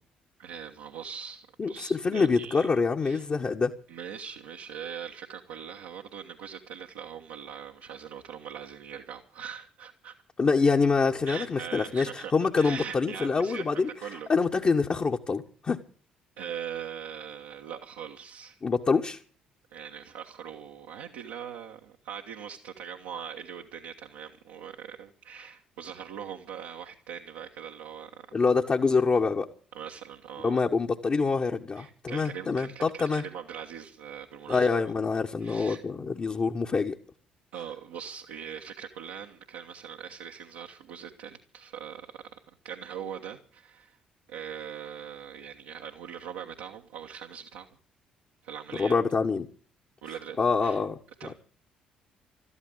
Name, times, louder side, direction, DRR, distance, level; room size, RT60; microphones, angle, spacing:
voice 1, 0.4-2.7 3.0-3.2 3.9-10.1 11.3-12.3 12.6-14.3 16.4-18.6 19.7-28.3 29.7-30.6 31.8-34.7 35.4-35.8 37.5-44.0 44.3-47.7 48.4-48.9 50.0-50.8 51.2-51.3, right 8 dB, 70° right, 1.4 m, -41 dB
voice 2, 1.6-3.7 10.4-13.9 14.3-15.8 18.6-19.2 28.3-29.5 30.4-33.2 34.5-37.0 48.7-49.5 50.4-51.3, left 4 dB, 35° left, 1.3 m, -26 dB
13.0 x 12.5 x 7.9 m
figure-of-eight pair, 45°, 4 cm